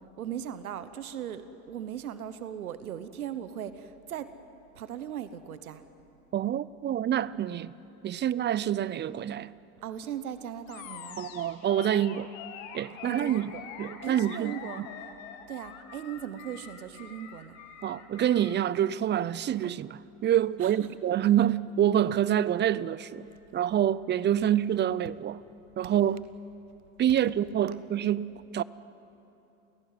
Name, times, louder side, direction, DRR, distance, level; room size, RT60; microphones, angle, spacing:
voice 1, 0.2-4.3 4.7-5.8 9.8-11.2 13.0-13.7 14.0-14.9 15.5-17.6 20.6-20.9, right 9 dB, 80° right, 1.1 m, -38 dB
voice 2, 6.3-7.8 8.0-9.5 11.2-12.3 12.7-13.5 13.8-14.9 17.8-23.2 23.5-25.4 25.8-26.3 27.0-28.6, right 10 dB, 25° right, 0.5 m, -27 dB
Animal, 10.7-18.6, left 8 dB, 65° left, 2.4 m, -44 dB
29.5 x 17.0 x 9.3 m
hypercardioid pair, 80°, 43 cm